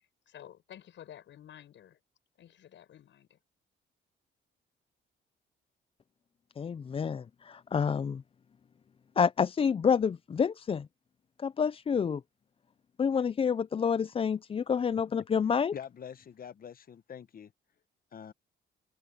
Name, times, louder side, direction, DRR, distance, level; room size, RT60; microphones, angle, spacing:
voice 1, 0.0-2.0 2.4-3.4, left 10 dB, 70° left, 7.1 m, -52 dB
voice 2, 6.6-8.2 9.2-10.9 11.4-12.2 13.0-15.7, left 6 dB, 30° left, 0.4 m, -28 dB
voice 3, 15.7-17.5 18.1-18.3, left 8 dB, 45° left, 1.0 m, -45 dB
open air
cardioid pair, 90°, 20 cm